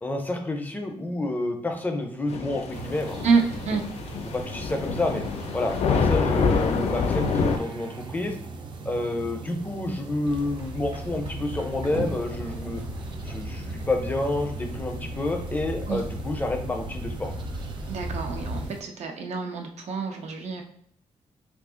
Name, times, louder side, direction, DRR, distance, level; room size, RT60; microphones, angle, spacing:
voice 1, 0.0-3.2 4.3-5.2 5.5-8.4 8.8-12.8 13.2-17.3, left 2 dB, 15° left, 4 dB, 0.5 m, -29 dB
Thunder / Rain, 2.3-7.6, left 5 dB, 75° left, 0.4 m, -26 dB
sound 1, 2.7-18.8, right 4 dB, 45° right, 0.4 m, -39 dB
voice 2, 3.2-3.8 15.9-16.0 17.9-20.6, right 5 dB, 90° right, 3 dB, 0.6 m, -27 dB
sound 2, 10.2-18.7, equal, 70° right, 1.5 m, -36 dB
2.7 x 2.4 x 3.6 m, 0.64 s
wide cardioid pair, 160°, 11 cm